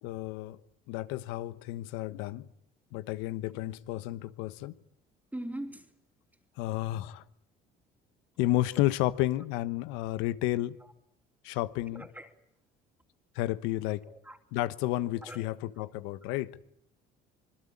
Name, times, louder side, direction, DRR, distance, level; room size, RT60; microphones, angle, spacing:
voice 1, 0.0-0.6 0.9-2.5 2.9-4.8 6.6-7.2 8.4-10.8 11.4-12.1 13.3-14.0 14.5-16.5, left 15 dB, 85° left, 1.2 m, -31 dB
voice 2, 5.3-5.9 10.8-10.9 11.9-12.3 14.1-14.4 15.2-15.9, right 1 dB, 10° right, 3.4 m, -42 dB
26.0 x 21.5 x 8.6 m
supercardioid pair, 85°, 20 cm